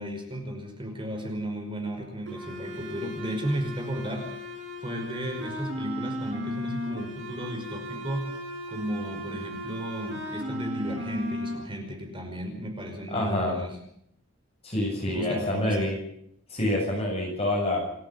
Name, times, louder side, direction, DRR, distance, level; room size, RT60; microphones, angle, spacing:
voice 1, 0.0-4.5 4.8-8.4 8.7-13.8 15.1-15.9, equal, 25° right, 3 dB, 5.5 m, -34 dB
sound 1, 2.3-11.5, left 1 dB, 65° right, 7.8 m, -36 dB
voice 2, 13.1-13.6 14.6-15.9 16.5-17.8, left 1 dB, 30° left, -2 dB, 7.7 m, -27 dB
28.5 x 11.5 x 9.8 m, 0.72 s
head